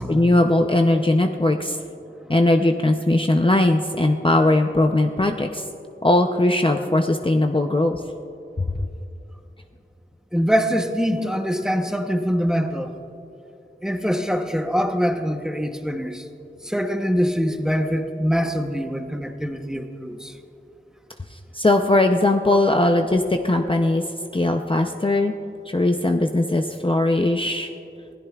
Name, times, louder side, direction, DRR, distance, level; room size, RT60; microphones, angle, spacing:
voice 1, 0.0-1.8 2.3-5.6 6.0-8.0 8.6-8.7 21.5-24.0 24.3-25.3 25.7-27.7, left 2 dB, 25° left, 4 dB, 0.6 m, -19 dB
voice 2, 10.3-12.9 13.8-16.2 16.6-20.3, equal, 5° right, 5 dB, 0.9 m, -24 dB
26.0 x 16.5 x 2.4 m, 2.7 s
wide cardioid pair, 50°, 20 cm